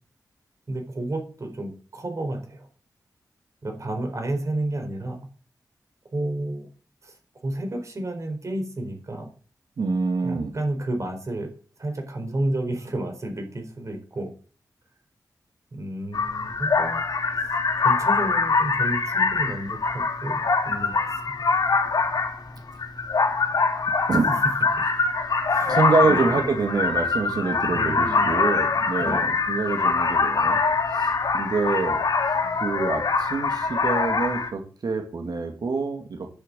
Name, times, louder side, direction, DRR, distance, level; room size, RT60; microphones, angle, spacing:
voice 1, 0.7-2.7 3.6-5.3 6.1-6.7 7.0-7.1 7.4-9.3 10.2-11.5 11.8-14.3 15.7-17.0 17.4-17.5 17.8-21.4 24.8-24.9 25.5-26.4 27.7-28.3 29.0-29.3, right 1 dB, 50° right, 4 dB, 4.0 m, -31 dB
voice 2, 9.8-10.5 24.1-24.4 25.7-30.6 30.9-32.0 32.6-36.3, right 4 dB, 75° right, 4 dB, 2.3 m, -26 dB
sound 1, 16.1-34.5, left 4 dB, 75° left, 2.3 m, -23 dB
10.5 x 7.1 x 7.6 m, 0.40 s
wide cardioid pair, 90°, 7 cm